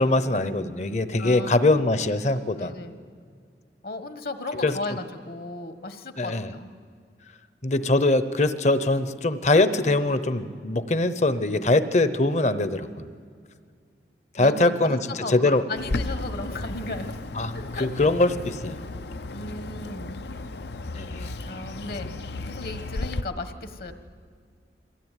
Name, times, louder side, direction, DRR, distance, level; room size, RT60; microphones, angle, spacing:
voice 1, 0.0-2.7 4.6-5.0 6.2-6.5 7.6-13.1 14.3-15.6 17.3-17.5 17.8-18.8 20.9-21.3 22.0-22.1, left 2 dB, 40° left, 12 dB, 0.9 m, -22 dB
voice 2, 1.2-1.7 2.6-3.0 3.8-6.7 14.4-17.1 17.5-17.9 19.3-20.2 21.4-22.1 22.5-23.9, left 2 dB, 55° left, 9 dB, 1.4 m, -35 dB
Bird, 15.8-23.2, left 2 dB, 70° left, 0.7 m, -34 dB
23.0 x 17.0 x 9.2 m, 2.1 s
head